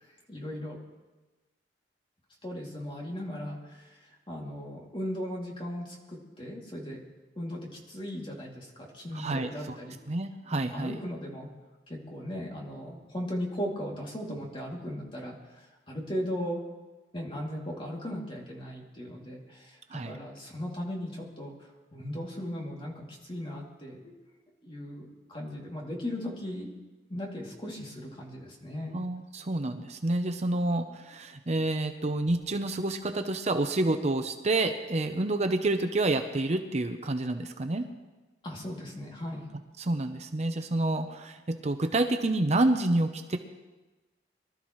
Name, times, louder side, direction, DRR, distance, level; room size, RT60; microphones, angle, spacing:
voice 1, 0.3-0.8 2.4-3.9 4.3-7.0 7.4-10.0 10.7-11.5 11.9-15.3 15.9-16.6 17.1-19.8 20.0-21.5 21.9-24.1 24.6-26.7 27.1-28.9 38.4-39.5, equal, 30° left, -2 dB, 2.7 m, -37 dB
voice 2, 9.1-9.8 10.1-11.0 19.9-20.2 28.9-37.9 39.8-43.4, right 2 dB, 40° right, 7 dB, 0.7 m, -28 dB
24.0 x 13.0 x 3.2 m, 1.2 s
head